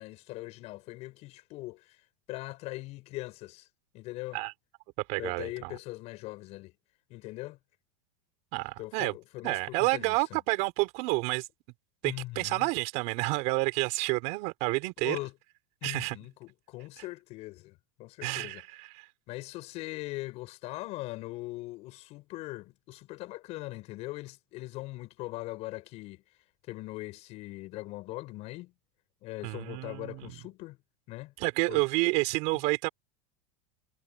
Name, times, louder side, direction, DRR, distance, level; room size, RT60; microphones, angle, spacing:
voice 1, 0.0-2.0 2.3-3.7 3.9-4.4 5.2-6.7 7.1-7.6 8.8-10.2 12.0-12.7 15.0-15.3 15.8-18.6 19.3-26.2 26.7-28.7 29.2-30.8 31.1-31.3 31.7-31.8, left 19 dB, 45° left, 7.8 m, -41 dB
voice 2, 5.1-5.8 8.5-9.2 9.4-11.5 12.0-15.2 15.8-16.2 18.2-19.1 29.4-30.4 31.4-32.9, right 26 dB, 50° right, 5.1 m, -29 dB
supercardioid pair, 155°, 15 cm